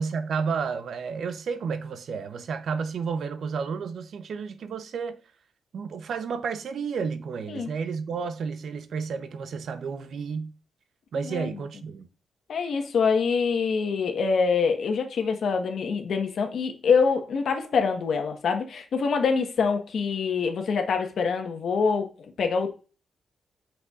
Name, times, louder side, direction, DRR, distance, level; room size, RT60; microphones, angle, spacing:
voice 1, 0.0-5.2 5.7-10.5 11.1-12.1, right 5 dB, 75° right, 0.7 m, -31 dB
voice 2, 11.1-11.5 12.5-22.1 22.4-22.7, left 5 dB, 70° left, 1.2 m, -25 dB
8.1 x 6.0 x 2.4 m
cardioid pair, 95°, 0 cm